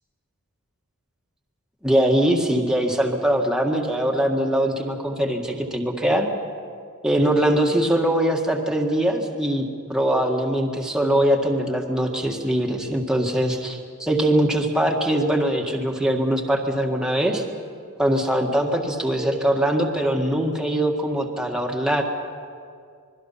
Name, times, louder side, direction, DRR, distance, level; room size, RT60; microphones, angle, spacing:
voice 1, 1.8-6.3 7.0-17.4 18.0-22.0, right 1 dB, 5° right, 1 dB, 1.8 m, -22 dB
26.0 x 22.0 x 5.8 m, 2.2 s
head